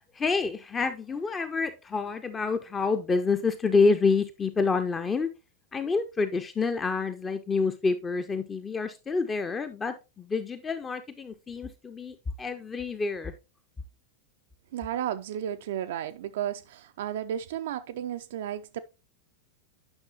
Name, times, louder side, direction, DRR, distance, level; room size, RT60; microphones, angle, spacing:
voice 1, 0.0-5.3 5.7-13.3, left 4 dB, 15° left, 0.6 m, -28 dB
voice 2, 14.7-18.8, right 10 dB, 55° right, 0.4 m, -33 dB
9.7 x 5.9 x 2.9 m
figure-of-eight pair, 90°, 0 cm